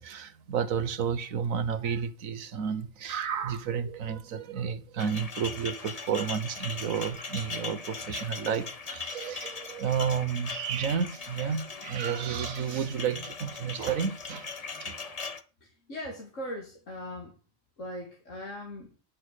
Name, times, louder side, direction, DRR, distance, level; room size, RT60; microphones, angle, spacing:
voice 1, 0.0-14.5 14.8-15.2, right 7 dB, 80° right, 1.5 m, -31 dB
sound 1, 5.0-15.4, left 5 dB, 35° left, 0.8 m, -39 dB
voice 2, 15.6-17.3 17.8-18.9, left 1 dB, 70° left, 2.5 m, -39 dB
10.5 x 6.5 x 6.4 m
omnidirectional pair, 1.4 m